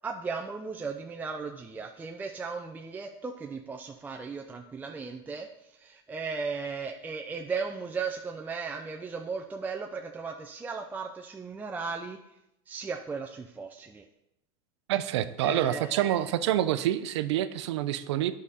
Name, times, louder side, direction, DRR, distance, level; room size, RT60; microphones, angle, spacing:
voice 1, 0.0-12.2 12.7-14.0 15.4-16.3, right 5 dB, 10° right, 2 dB, 0.4 m, -36 dB
voice 2, 14.9-18.3, right 12 dB, 85° right, 13 dB, 0.6 m, -27 dB
9.5 x 5.0 x 4.2 m, 0.87 s
supercardioid pair, 135°, 14 cm